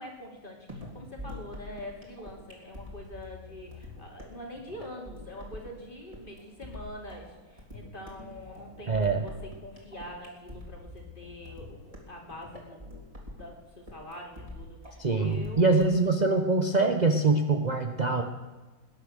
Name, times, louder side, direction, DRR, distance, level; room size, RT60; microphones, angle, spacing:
voice 1, 0.0-9.3 9.6-13.0 13.4-15.8, left 1 dB, 25° left, 0 dB, 3.0 m, -44 dB
sound 1, 0.7-16.1, left 1 dB, 15° right, 3.3 m, -45 dB
voice 2, 8.9-9.2 15.0-18.2, right 3 dB, 55° right, 5 dB, 0.4 m, -24 dB
20.0 x 9.9 x 6.6 m, 1.3 s
omnidirectional pair, 2.1 m